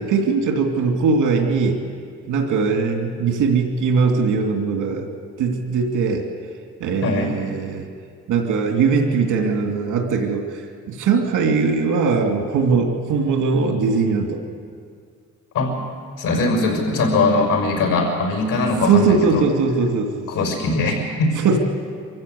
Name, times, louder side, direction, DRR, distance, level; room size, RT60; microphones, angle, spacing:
voice 1, 0.0-1.8 2.3-5.1 5.4-6.3 6.8-7.9 8.3-14.4 18.8-20.3 21.3-21.6, right 5 dB, 85° right, 2 dB, 2.6 m, -20 dB
voice 2, 7.0-7.3 15.5-15.8 16.2-19.4 20.3-21.4, left 2 dB, 80° left, 1 dB, 6.3 m, -20 dB
24.5 x 15.0 x 8.4 m, 2.1 s
cardioid pair, 90°, 30 cm